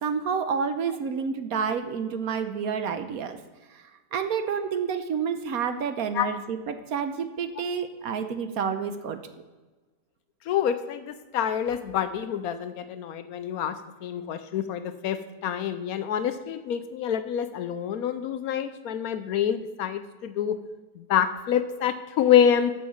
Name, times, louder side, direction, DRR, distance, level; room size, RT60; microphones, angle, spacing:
voice 1, 0.0-3.4 3.7-3.8 4.1-9.2, right 6 dB, 70° right, 8 dB, 1.2 m, -29 dB
voice 2, 10.5-13.8 14.0-20.6 21.0-22.7, left 9 dB, 70° left, 11 dB, 1.0 m, -26 dB
8.5 x 6.3 x 7.0 m, 1.3 s
omnidirectional pair, 1.7 m